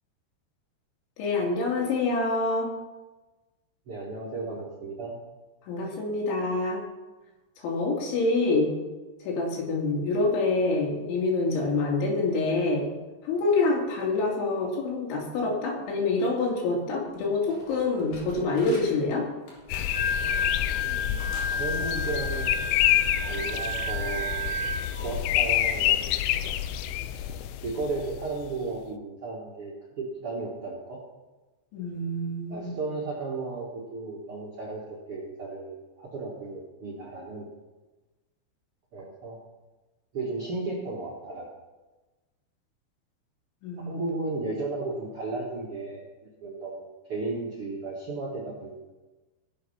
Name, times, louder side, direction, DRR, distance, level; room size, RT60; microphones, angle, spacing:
voice 1, 1.2-2.7 5.7-6.8 7.6-8.7 9.2-12.9 13.2-19.3 31.7-32.7 43.6-43.9, left 3 dB, 70° left, -2 dB, 4.7 m, -26 dB
voice 2, 3.8-5.2 20.8-22.5 23.2-24.4 25.0-26.0 27.2-31.0 32.5-37.5 38.9-39.4 40.1-41.5 43.8-48.9, right 3 dB, 70° right, -4 dB, 1.3 m, -34 dB
sound 1, 17.1-17.2 17.5-19.0 19.5-20.8 21.2-23.2 23.6-23.9, left 1 dB, 50° left, 4.3 m, -46 dB
sound 2, 19.7-28.5, left 12 dB, 85° left, 3.1 m, -28 dB
Wind instrument woodwind instrument, 19.7-25.0, left 2 dB, 15° left, 1.0 m, -31 dB
17.5 x 7.1 x 5.6 m, 1.2 s
omnidirectional pair, 5.6 m